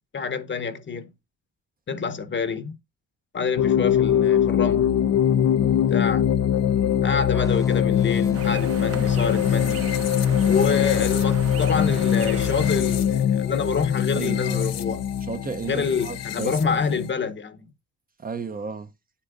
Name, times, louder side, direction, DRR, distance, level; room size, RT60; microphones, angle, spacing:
voice 1, 0.1-1.1 1.9-2.8 3.3-4.9 5.9-6.3 7.0-9.9 10.4-15.0 15.7-17.7, left 5 dB, 40° left, 1.0 m, -27 dB
sound 1, 3.6-17.1, left 9 dB, 60° left, 0.6 m, -22 dB
sound 2, 7.3-10.8, left 4 dB, 10° left, 0.8 m, -35 dB
sound 3, 8.3-13.2, right 6 dB, 50° right, 1.1 m, -36 dB
voice 2, 14.2-14.6 15.2-16.9 18.2-18.9, right 5 dB, 30° right, 0.7 m, -33 dB
9.4 x 8.4 x 2.6 m
cardioid pair, 90°, 30 cm